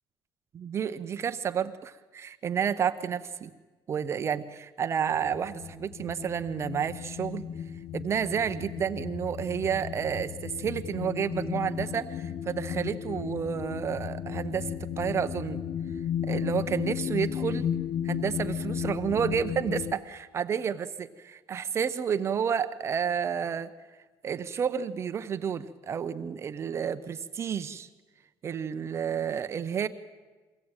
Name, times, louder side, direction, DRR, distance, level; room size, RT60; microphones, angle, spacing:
voice 1, 0.6-3.5 3.9-7.5 7.9-14.7 15.0-15.6 16.2-17.7 18.0-23.7 24.2-27.9 28.4-29.9, right 7 dB, 30° right, 10 dB, 0.6 m, -30 dB
sound 1, 5.1-20.0, left 9 dB, 75° left, 0.8 m, -34 dB
23.0 x 16.0 x 8.7 m, 1.3 s
cardioid pair, 180°, 9 cm